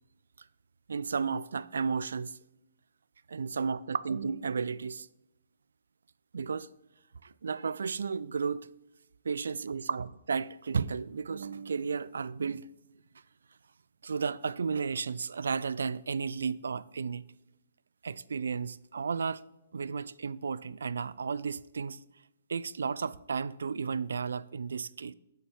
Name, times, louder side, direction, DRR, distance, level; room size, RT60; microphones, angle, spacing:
voice 1, 0.9-2.4 3.3-5.1 6.3-6.7 7.2-8.7 9.2-12.7 14.0-17.2 18.0-19.4 19.7-22.0 22.5-25.1, right 5 dB, 80° right, 0.3 m, -33 dB
6.1 x 5.6 x 6.3 m
hypercardioid pair, 140°, 0 cm